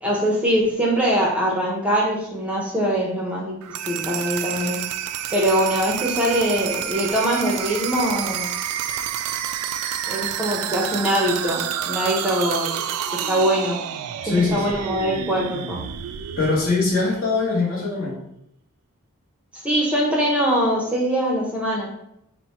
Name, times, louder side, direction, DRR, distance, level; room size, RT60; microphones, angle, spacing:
voice 1, 0.0-3.5 3.8-4.8 5.3-8.5 10.0-12.7 13.3-13.8 14.2-15.8 19.5-21.9, equal, 5° right, -3 dB, 0.6 m, -22 dB
sound 1, 3.6-17.4, right 9 dB, 90° right, 0.3 m, -29 dB
voice 2, 14.2-14.6 16.4-18.2, left 3 dB, 40° left, -7 dB, 0.9 m, -22 dB
4.1 x 2.1 x 4.3 m, 0.79 s
head